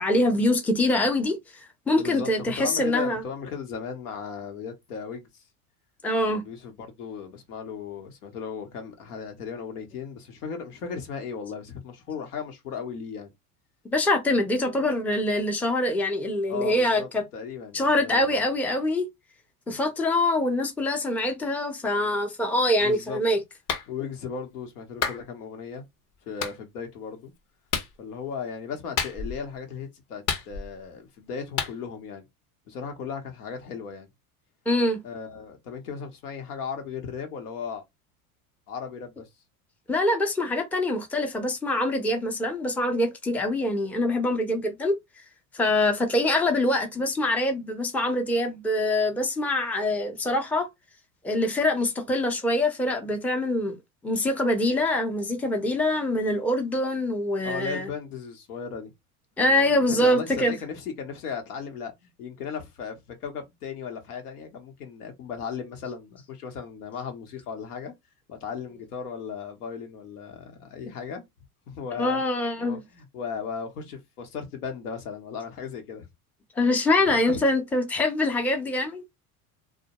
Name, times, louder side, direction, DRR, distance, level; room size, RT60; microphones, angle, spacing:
voice 1, 0.0-1.4 1.9-3.2 6.0-6.4 13.9-17.2 17.7-19.1 19.7-23.4 34.7-35.0 39.9-45.0 45.5-50.7 51.2-53.7 54.0-57.9 59.4-60.5 72.0-72.8 76.6-79.0, left 1 dB, 5° left, 0.5 m, -24 dB
voice 2, 1.9-5.3 6.3-13.3 16.5-18.4 22.8-23.2 23.9-25.9 26.2-27.3 28.0-32.2 32.7-34.1 35.0-37.8 38.7-39.3 57.4-58.9 59.4-67.9 68.3-71.2 71.7-72.2 72.6-76.1 77.0-77.4, left 6 dB, 80° left, 0.9 m, -36 dB
Clapping, 23.7-23.9 25.0-25.2 26.4-26.6 27.7-27.9 29.0-29.4 30.3-30.8 31.6-31.7, left 6 dB, 45° left, 0.7 m, -29 dB
2.2 x 2.1 x 2.8 m
hypercardioid pair, 85°, 45 cm